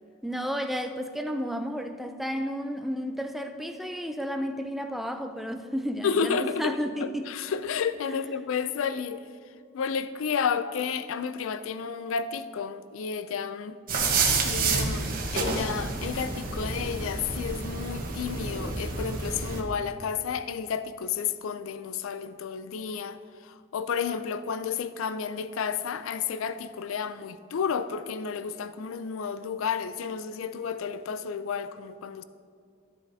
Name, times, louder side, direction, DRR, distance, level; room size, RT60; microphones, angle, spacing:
voice 1, 0.2-7.3, equal, ahead, 0.4 m, -32 dB
voice 2, 6.0-9.2 9.7-13.8 14.3-23.2 23.4-32.2, left 6 dB, 75° left, 0.4 m, -31 dB
sound 1, 13.9-19.6, right 4 dB, 45° right, 1.1 m, -29 dB
12.5 x 8.0 x 2.7 m
head